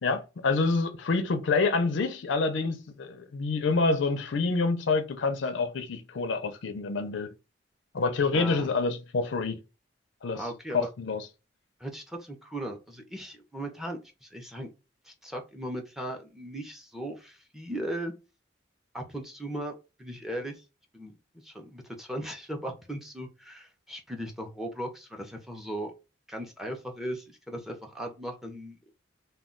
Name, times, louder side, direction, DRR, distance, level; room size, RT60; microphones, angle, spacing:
voice 1, 0.0-7.3 7.9-9.6 10.2-10.4 10.7-11.2, left 3 dB, 85° left, 0.5 m, -27 dB
voice 2, 8.3-8.7 10.3-10.9 11.8-14.7 15.0-18.1 18.9-20.6 20.9-21.1 21.4-25.9 26.3-28.8, right 1 dB, ahead, 0.5 m, -37 dB
2.2 x 2.2 x 3.7 m
head